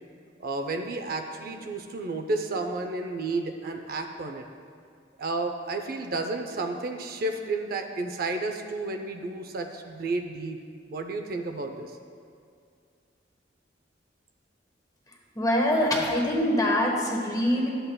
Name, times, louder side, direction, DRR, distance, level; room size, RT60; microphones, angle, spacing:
voice 1, 0.4-4.4 5.2-10.6 10.9-11.9, right 2 dB, 55° right, 5 dB, 0.5 m, -31 dB
voice 2, 15.3-17.7, left 1 dB, 20° left, -1 dB, 1.1 m, -24 dB
12.0 x 7.8 x 2.2 m, 2.3 s
head